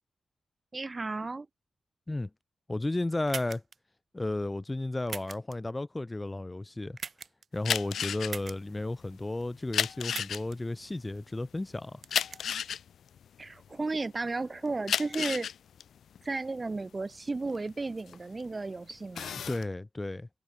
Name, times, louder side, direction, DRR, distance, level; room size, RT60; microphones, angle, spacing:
voice 1, 0.7-1.5 13.4-15.5 16.2-19.4, right 3 dB, 30° right, 1.1 m, -34 dB
voice 2, 2.7-3.6 4.1-7.0 7.5-12.0 19.5-20.3, left 2 dB, 20° left, 0.7 m, -33 dB
sound 1, 3.3-3.8 5.1-5.5 7.0-7.4 8.3-8.6 10.1-10.6 12.0-12.4, right 5 dB, 50° right, 1.1 m, -40 dB
sound 2, 7.6-14.2 14.7-18.5 18.9-19.6, left 8 dB, 85° left, 0.4 m, -33 dB
cardioid pair, 85°, 0 cm